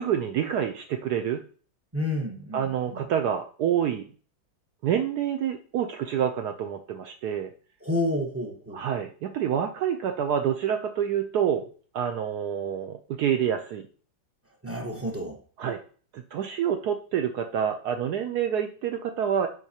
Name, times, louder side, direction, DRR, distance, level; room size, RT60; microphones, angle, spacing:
voice 1, 0.0-1.4 2.5-4.0 4.8-7.5 8.7-11.7 11.9-13.8 15.6-15.8 16.1-19.5, right 9 dB, 70° right, 5 dB, 0.9 m, -27 dB
voice 2, 1.9-3.1 7.8-8.9 14.6-15.4, left 1 dB, 20° right, 2 dB, 0.3 m, -30 dB
7.9 x 4.6 x 2.8 m, 0.41 s
omnidirectional pair, 2.1 m